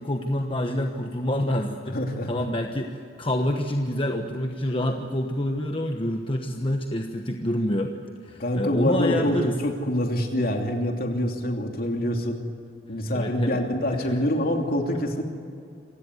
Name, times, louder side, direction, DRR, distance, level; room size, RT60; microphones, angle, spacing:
voice 1, 0.0-2.0 2.3-7.9 8.2-9.6 13.1-13.6 13.9-14.1, left 1 dB, 30° left, 3 dB, 1.2 m, -27 dB
voice 2, 1.9-2.3 8.4-12.4 12.9-15.2, left 1 dB, 55° left, 3 dB, 2.9 m, -25 dB
27.0 x 16.5 x 9.5 m, 2.4 s
head